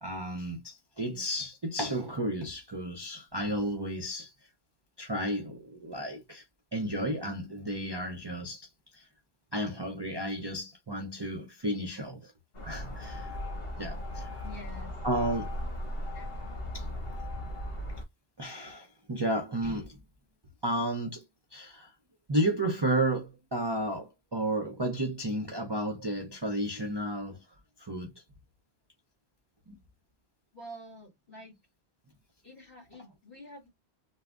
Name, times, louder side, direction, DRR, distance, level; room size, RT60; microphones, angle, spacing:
voice 1, 0.0-4.3 5.0-6.4 6.7-9.0 9.5-12.3 12.6-13.4 13.8-14.3 15.0-15.6 16.7-16.9 18.4-20.0 20.6-21.2 21.5-21.9 22.3-27.4 27.8-28.1 29.7-29.8, right 1 dB, 35° right, 0.4 m, -32 dB
sound 1, 12.5-18.0, left 1 dB, 60° left, 1.1 m, -37 dB
voice 2, 14.4-14.9 16.1-16.3 30.5-31.6 32.4-33.7, equal, 45° left, 1.9 m, -48 dB
3.5 x 2.0 x 2.3 m
omnidirectional pair, 1.1 m